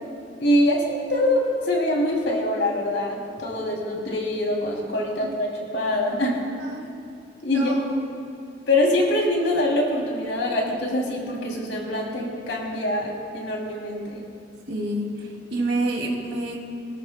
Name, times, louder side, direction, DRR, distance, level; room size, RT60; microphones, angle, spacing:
voice 1, 0.4-6.4 7.4-7.7 8.7-14.2, left 1 dB, 85° left, -1 dB, 2.8 m, -24 dB
voice 2, 6.6-6.9 7.5-7.9 14.7-16.6, right 1 dB, 70° right, -1 dB, 2.4 m, -28 dB
23.0 x 13.5 x 2.2 m, 2.6 s
head